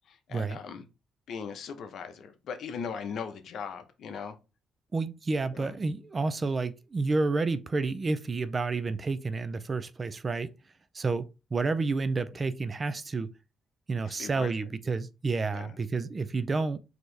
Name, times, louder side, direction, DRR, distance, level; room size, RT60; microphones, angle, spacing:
voice 1, 0.1-0.8 1.3-4.3 5.5-5.8 14.0-14.5 15.5-15.7, left 6 dB, 70° left, 0.7 m, -39 dB
voice 2, 4.9-10.5 10.9-13.3 13.9-16.8, right 3 dB, 35° right, 0.4 m, -30 dB
4.4 x 2.9 x 3.2 m
cardioid pair, 90°, 0 cm